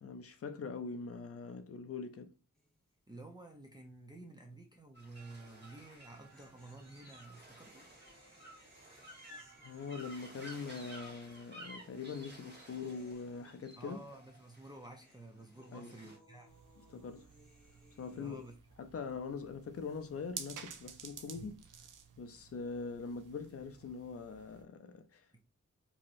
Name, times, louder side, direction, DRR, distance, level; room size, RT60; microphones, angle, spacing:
voice 1, 0.0-2.3 9.6-14.1 15.7-15.9 16.9-17.3 18.0-18.5 18.8-21.6 22.2-25.3, left 5 dB, 50° left, 0.5 m, -43 dB
sound 1, 2.5-2.9 3.2-3.3 5.9-14.3 14.5-18.6, equal, ahead, 1.2 m, -65 dB
voice 2, 3.1-7.9 13.8-16.5 18.1-18.6 25.3-25.4, right 2 dB, 15° right, 0.5 m, -52 dB
sound 2, 4.9-16.2, right 1 dB, 35° right, 1.3 m, -54 dB
sound 3, 16.5-24.6, right 7 dB, 90° right, 0.5 m, -52 dB
3.0 x 2.7 x 2.5 m
wide cardioid pair, 105°, 31 cm